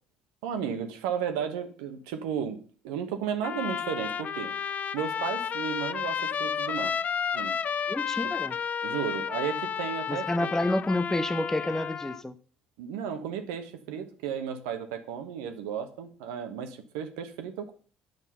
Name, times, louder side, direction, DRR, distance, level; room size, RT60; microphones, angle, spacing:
voice 1, 0.4-4.5 4.9-6.9 7.3-7.8 8.2-8.3 8.8-10.5 12.8-17.7, right 8 dB, 75° right, 1.1 m, -34 dB
Trumpet, 3.4-12.2, left 7 dB, 40° left, 0.4 m, -32 dB
voice 2, 7.9-8.6 10.1-12.3, left 1 dB, 10° left, 0.7 m, -29 dB
7.9 x 6.1 x 5.6 m
hypercardioid pair, 60°, 4 cm